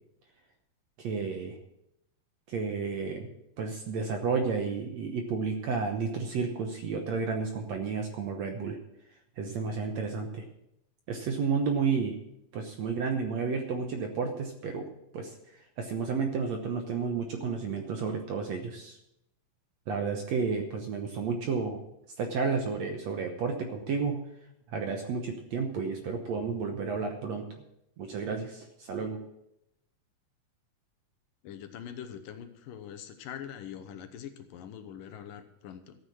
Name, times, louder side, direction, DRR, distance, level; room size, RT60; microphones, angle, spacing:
voice 1, 1.0-1.6 2.5-3.3 3.6-8.8 9.4-10.5 11.1-12.2 12.5-14.9 15.1-15.3 15.8-19.0 19.9-21.8 22.2-24.2 24.7-27.4 28.0-29.2, right 5 dB, 65° right, 4 dB, 1.8 m, -31 dB
voice 2, 31.4-36.0, left 9 dB, 75° left, 8 dB, 2.5 m, -43 dB
13.5 x 8.9 x 6.2 m, 0.80 s
omnidirectional pair, 4.1 m